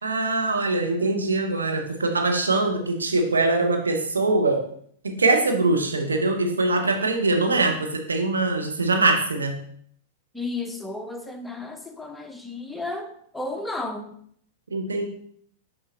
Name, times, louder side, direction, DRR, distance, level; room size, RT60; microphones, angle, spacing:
voice 1, 0.0-4.6 5.0-9.6 14.7-15.1, right 2 dB, 85° right, 4 dB, 1.0 m, -23 dB
voice 2, 10.3-14.1, left 2 dB, 5° left, 5 dB, 0.7 m, -33 dB
6.7 x 5.5 x 2.8 m, 0.63 s
figure-of-eight pair, 100°, 0 cm